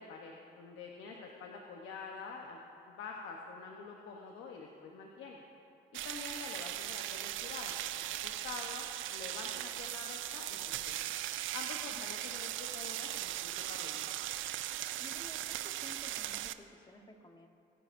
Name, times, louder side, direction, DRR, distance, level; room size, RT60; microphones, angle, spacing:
voice 1, 0.0-2.6 2.9-5.4 6.0-11.0 11.5-14.1, left 5 dB, 90° left, 0 dB, 1.0 m, -47 dB
sound 1, 5.9-16.5, right 13 dB, 80° right, 0.4 m, -39 dB
voice 2, 15.0-17.5, left 1 dB, 20° left, 4 dB, 1.2 m, -54 dB
20.5 x 10.0 x 2.6 m, 2.6 s
cardioid pair, 90°, 20 cm